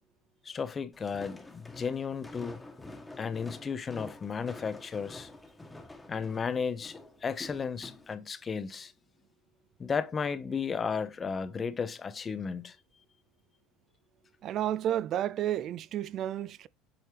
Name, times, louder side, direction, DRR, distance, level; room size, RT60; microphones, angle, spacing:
voice 1, 0.4-2.6 3.2-5.3 6.1-8.9 9.8-12.8, left 6 dB, 30° left, 0.7 m, -34 dB
Walk footsteps, 0.9-8.1, left 2 dB, 15° left, 1.2 m, -48 dB
voice 2, 14.4-16.7, right 11 dB, 50° right, 0.3 m, -31 dB
7.8 x 4.3 x 3.4 m
hypercardioid pair, 75°, 0 cm